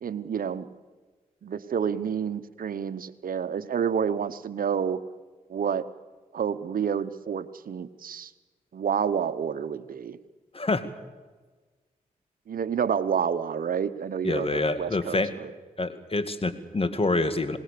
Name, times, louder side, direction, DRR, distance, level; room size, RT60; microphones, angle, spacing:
voice 1, 0.0-0.7 1.4-5.0 5.5-5.9 6.3-8.3 8.7-10.2 12.5-15.5, right 7 dB, 75° right, 13 dB, 1.0 m, -29 dB
voice 2, 10.5-10.9 14.2-15.3 15.8-17.6, left 2 dB, 40° left, 11 dB, 2.3 m, -26 dB
26.0 x 20.0 x 6.9 m, 1.3 s
supercardioid pair, 40°, 15 cm